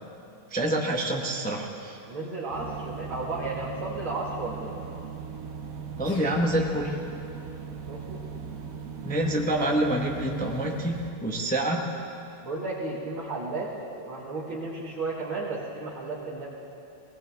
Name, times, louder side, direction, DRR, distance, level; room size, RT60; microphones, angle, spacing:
voice 1, 0.5-2.0 6.0-7.0 9.0-11.9, right 1 dB, 10° left, 0 dB, 0.6 m, -27 dB
voice 2, 2.1-4.7 7.8-8.2 12.4-16.5, right 3 dB, 80° right, -8 dB, 2.5 m, -33 dB
sound 1, 2.5-11.1, right 6 dB, 55° right, 1.1 m, -39 dB
sound 2, 6.0-7.0, left 1 dB, 80° left, 3.3 m, -45 dB
19.0 x 18.0 x 3.5 m, 2.7 s
omnidirectional pair, 2.2 m